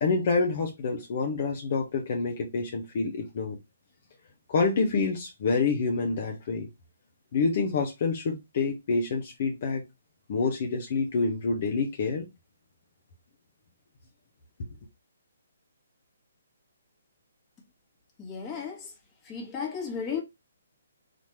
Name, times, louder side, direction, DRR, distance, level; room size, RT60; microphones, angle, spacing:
voice 1, 0.0-3.6 4.5-6.7 7.3-9.8 10.3-12.3, left 4 dB, 45° left, 0.9 m, -27 dB
voice 2, 18.2-18.9 19.2-20.2, left 6 dB, 15° left, 1.5 m, -34 dB
4.2 x 3.1 x 3.1 m
figure-of-eight pair, 130°, 0 cm